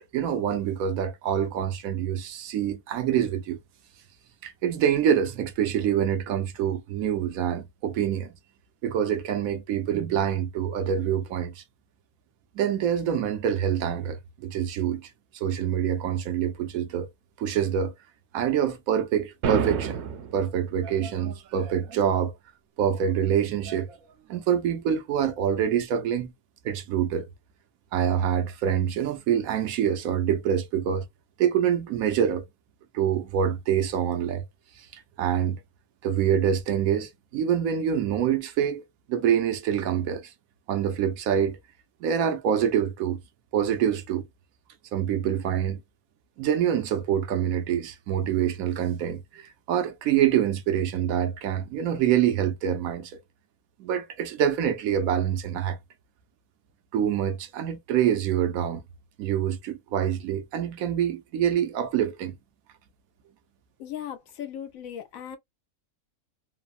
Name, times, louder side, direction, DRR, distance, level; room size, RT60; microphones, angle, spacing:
voice 1, 0.1-3.6 4.4-8.3 8.8-11.6 12.6-15.0 15.3-17.1 17.4-17.9 18.3-20.0 20.3-22.3 22.8-24.0 24.3-26.3 26.6-27.3 27.9-31.1 31.4-32.4 32.9-34.4 34.9-35.6 36.0-38.8 39.1-40.3 40.7-41.6 42.0-43.2 43.5-44.3 44.9-45.8 46.4-53.2 53.8-55.8 56.9-58.8 59.2-62.3, right 9 dB, 85° right, 1.1 m, -26 dB
sound 1, 19.4-20.5, right 7 dB, 60° right, 0.8 m, -27 dB
voice 2, 63.8-65.4, left 10 dB, 75° left, 1.1 m, -37 dB
3.2 x 2.0 x 2.4 m
omnidirectional pair, 1.5 m